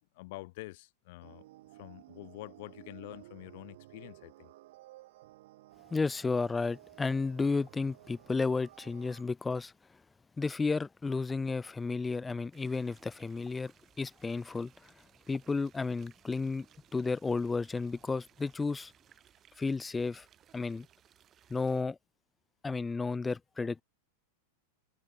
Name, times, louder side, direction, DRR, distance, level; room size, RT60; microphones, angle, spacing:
voice 1, 0.1-1.4 1.7-4.5, left 21 dB, 50° left, 1.0 m, -47 dB
sound 1, 1.2-9.2, right 17 dB, 55° right, 4.8 m, -55 dB
voice 2, 5.9-9.7 10.4-14.9 15.3-16.7 16.9-18.9 19.6-20.3 20.5-20.9 21.5-22.0 22.6-23.8, left 4 dB, 10° left, 0.8 m, -32 dB
sound 2, 12.5-21.8, right 10 dB, 25° right, 7.3 m, -64 dB
figure-of-eight pair, 90°, 0 cm